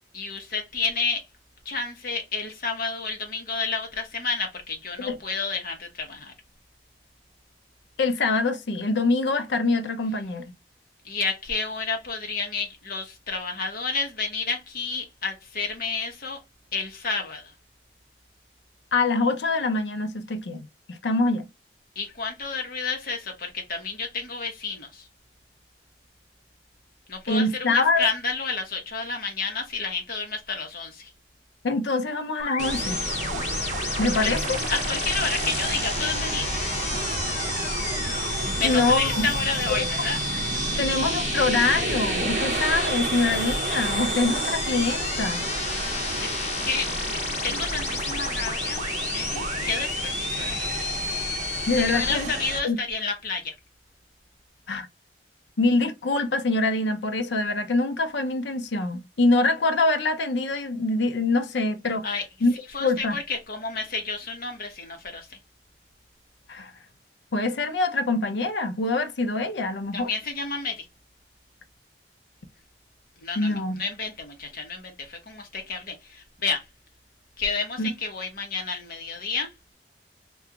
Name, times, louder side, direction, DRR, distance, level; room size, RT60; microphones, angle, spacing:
voice 1, 0.1-1.3 1.6-6.3 11.0-16.4 16.7-17.5 22.0-25.1 27.1-31.1 34.2-34.3 34.7-36.5 38.5-40.2 40.7-40.8 46.2-50.9 51.7-53.5 62.0-62.2 62.7-65.4 69.9-70.9 73.2-76.6 77.4-79.5, left 4 dB, 55° left, 0.9 m, -30 dB
voice 2, 8.0-10.4 18.9-21.5 27.3-28.1 31.6-33.0 34.0-34.6 38.6-39.3 39.7-39.9 40.8-45.5 51.7-52.3 52.6-52.8 54.7-54.9 55.6-62.1 62.4-62.5 62.8-63.2 66.5-66.7 67.3-70.1 73.4-73.8 77.8-77.9, left 3 dB, 85° left, 0.6 m, -24 dB
sound 1, 32.4-52.1, left 7 dB, 40° left, 0.4 m, -32 dB
sound 2, 32.6-52.6, right 3 dB, 45° right, 0.7 m, -30 dB
2.9 x 2.3 x 3.5 m
head